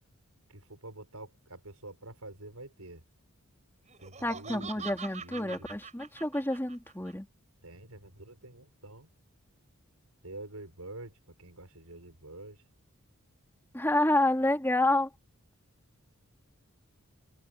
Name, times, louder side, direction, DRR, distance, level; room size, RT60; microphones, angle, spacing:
voice 1, 0.5-3.0 4.0-5.7 7.6-9.1 10.2-12.6, right 2 dB, 85° right, 7.0 m, -47 dB
Laughter, 3.9-7.1, right 6 dB, 30° right, 6.0 m, -44 dB
voice 2, 4.2-7.3 13.7-15.1, left 1 dB, 10° left, 2.5 m, -28 dB
head